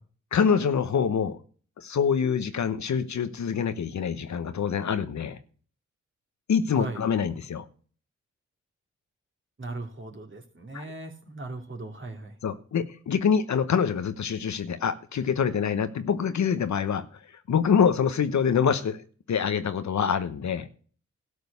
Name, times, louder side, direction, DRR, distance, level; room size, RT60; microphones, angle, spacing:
voice 1, 0.3-1.4 1.8-5.4 6.5-7.6 10.7-10.9 12.4-17.2 17.5-19.0 19.3-20.7, left 7 dB, 65° left, 10 dB, 1.0 m, -25 dB
voice 2, 9.6-12.4, right 2 dB, 40° right, 3 dB, 2.8 m, -38 dB
12.5 x 5.1 x 8.1 m, 0.43 s
supercardioid pair, 40°, 31 cm